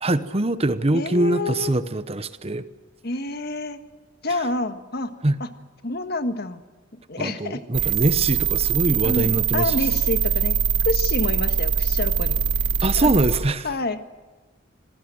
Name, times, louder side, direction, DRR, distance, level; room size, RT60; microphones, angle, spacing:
voice 1, 0.0-2.6 5.2-5.4 7.2-9.8 12.8-13.7, right 2 dB, 30° right, 13 dB, 1.0 m, -23 dB
voice 2, 0.9-1.8 3.0-3.8 4.2-5.1 5.4-5.5 5.8-6.6 7.1-7.9 9.0-10.6 10.9-12.4 13.0-13.1 13.6-14.0, left 2 dB, 55° left, 8 dB, 1.7 m, -28 dB
sound 1, 7.7-13.4, right 7 dB, 60° right, 2.2 m, -22 dB
27.5 x 19.5 x 7.8 m, 1.3 s
head